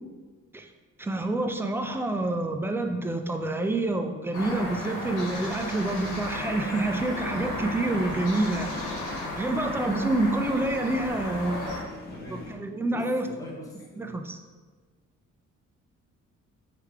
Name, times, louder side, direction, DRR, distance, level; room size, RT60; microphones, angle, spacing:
voice 1, 1.0-9.1 9.4-11.6 12.3-13.3 14.0-14.4, right 2 dB, 10° right, 6 dB, 0.3 m, -28 dB
sound 1, 4.3-11.8, left 1 dB, 90° left, 1.3 m, -34 dB
sound 2, 5.8-12.6, left 2 dB, 30° left, 1.1 m, -43 dB
voice 2, 11.4-11.8 12.1-12.5 12.9-14.2, left 1 dB, 10° left, -4 dB, 0.9 m, -41 dB
3.3 x 3.3 x 4.8 m, 1.4 s
cardioid pair, 90°, 30 cm